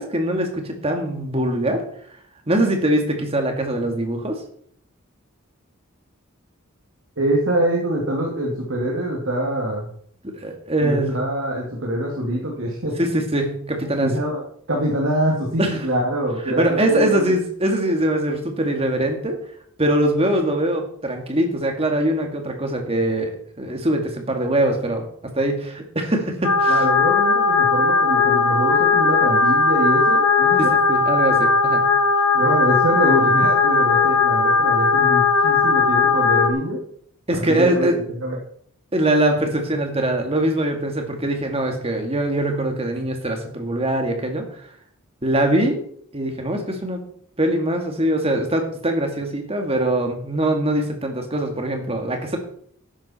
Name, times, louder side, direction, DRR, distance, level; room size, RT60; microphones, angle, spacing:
voice 1, 0.0-1.8 2.5-4.4 10.2-11.2 13.0-14.2 15.6-15.8 16.6-19.4 19.8-26.8 30.6-31.8 37.3-38.0 38.9-44.4 45.2-45.8 46.1-47.0 47.4-52.4, right 1 dB, 30° right, 4 dB, 2.2 m, -22 dB
voice 2, 7.2-9.9 10.8-13.0 14.0-14.4 14.7-17.3 26.7-30.7 32.3-36.8 37.5-37.9 38.2-38.4, right 1 dB, 65° right, -2 dB, 2.5 m, -24 dB
sound 1, 26.4-36.5, left 4 dB, 85° left, 1.8 m, -18 dB
12.5 x 10.0 x 4.4 m, 0.62 s
head